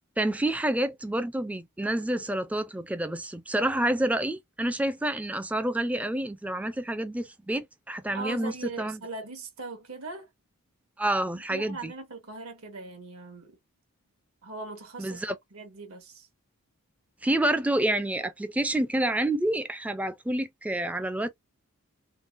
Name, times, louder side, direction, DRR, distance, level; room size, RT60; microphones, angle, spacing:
voice 1, 0.2-9.0 11.0-11.9 15.0-15.4 17.2-21.3, right 1 dB, 5° right, 0.3 m, -28 dB
voice 2, 8.1-10.3 11.3-13.6 14.4-15.2 15.5-16.3, right 3 dB, 80° right, 1.5 m, -40 dB
3.8 x 2.0 x 2.4 m
head